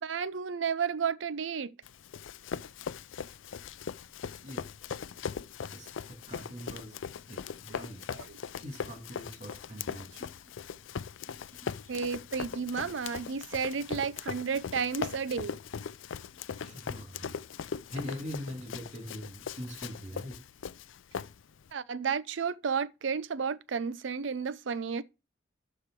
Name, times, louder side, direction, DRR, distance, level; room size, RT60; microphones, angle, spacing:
voice 1, 0.0-1.7 8.1-8.3 11.9-15.6 21.7-25.0, right 6 dB, 70° right, 0.5 m, -32 dB
Run, 1.8-21.7, left 6 dB, 90° left, 0.5 m, -40 dB
voice 2, 5.7-8.1 8.6-10.5 11.2-12.1 16.3-20.4, equal, 40° right, 2.5 m, -43 dB
12.5 x 5.0 x 4.6 m
head